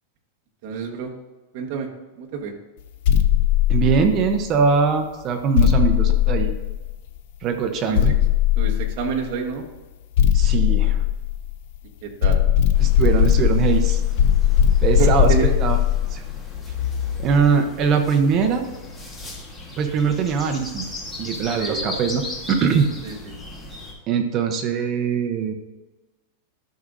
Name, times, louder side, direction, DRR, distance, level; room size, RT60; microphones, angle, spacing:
voice 1, 0.6-1.1 1.5-1.9 2.1-2.5 7.9-8.1 8.6-9.6 12.0-12.4 15.0-15.5 21.6-21.9 23.0-23.4, right 6 dB, 45° right, 1 dB, 1.4 m, -28 dB
sound 1, 3.0-4.5 5.6-7.2 7.9-9.3 10.2-11.8 12.2-17.5, left 10 dB, 55° left, 0.5 m, -19 dB
voice 2, 3.7-6.5 7.4-8.1 10.3-11.0 12.8-14.0 14.8-15.8 16.1-16.2 17.2-18.6 19.8-20.9 21.2-22.2 22.5-22.9 24.1-25.5, right 6 dB, 30° right, 6 dB, 0.8 m, -21 dB
sound 2, 12.7-23.9, left 2 dB, 10° left, 1.4 m, -37 dB
12.0 x 6.1 x 2.6 m, 1.2 s
supercardioid pair, 165°, 0 cm